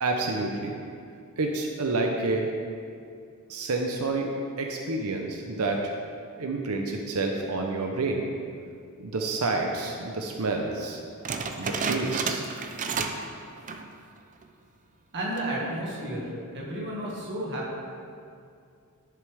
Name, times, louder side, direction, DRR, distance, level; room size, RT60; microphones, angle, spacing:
voice 1, 0.0-0.8 1.4-2.5 3.5-4.3 4.6-5.9 6.4-8.3 9.0-11.0 11.6-12.4, right 3 dB, 75° right, 2 dB, 0.7 m, -29 dB
sound 1, 11.2-13.3 13.6-13.9 14.4-14.5 15.2-15.6, right 5 dB, 35° right, 0.5 m, -31 dB
voice 2, 15.1-17.8, right 1 dB, 55° right, -5 dB, 1.8 m, -32 dB
11.0 x 6.8 x 3.4 m, 2.4 s
head